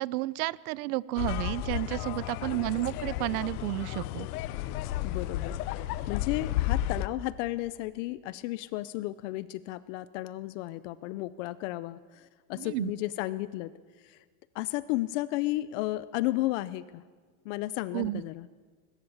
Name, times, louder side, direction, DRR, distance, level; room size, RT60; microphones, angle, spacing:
voice 1, 0.0-4.3 12.6-12.9 17.9-18.2, right 19 dB, 70° right, 22 dB, 0.7 m, -31 dB
sound 1, 1.2-7.1, left 13 dB, 80° left, 1.0 m, -33 dB
voice 2, 5.0-13.7 14.0-14.2 14.5-17.0 17.4-18.5, left 17 dB, 55° left, 17 dB, 0.7 m, -33 dB
21.0 x 21.0 x 7.2 m, 1.5 s
cardioid pair, 170°, 45 cm